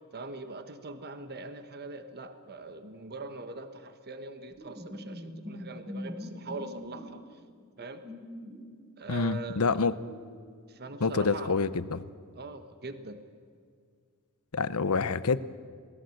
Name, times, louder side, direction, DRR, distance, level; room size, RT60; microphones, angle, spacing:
voice 1, 0.1-7.4 7.8-8.0 9.0-9.9 10.7-11.6 12.3-13.2, right 2 dB, 45° right, 9 dB, 1.3 m, -42 dB
sound 1, 4.5-7.1 7.6-8.6 9.8-11.3, left 1 dB, 25° right, 6.4 m, -43 dB
voice 2, 9.1-9.9 11.0-12.1 14.5-15.4, left 4 dB, 70° left, 15 dB, 0.8 m, -27 dB
26.5 x 18.5 x 7.9 m, 2.1 s
head